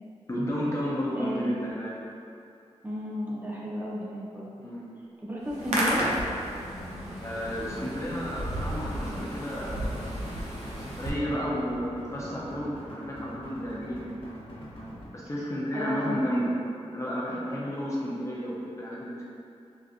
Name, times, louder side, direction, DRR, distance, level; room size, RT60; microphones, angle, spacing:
voice 1, 0.3-1.9 4.6-4.8 7.2-10.0 10.6-14.1 15.1-16.5 16.8-19.2, equal, 25° left, -6 dB, 0.5 m, -32 dB
voice 2, 1.1-1.5 2.8-4.5 5.2-6.1 15.7-16.3, equal, 15° right, -6 dB, 0.7 m, -33 dB
Hands, 5.4-11.1, right 1 dB, 90° right, 0.6 m, -33 dB
sound 1, 6.5-15.0, equal, 55° left, 0.8 m, -44 dB
3.8 x 2.3 x 2.4 m, 2.5 s
cardioid pair, 70°, 11 cm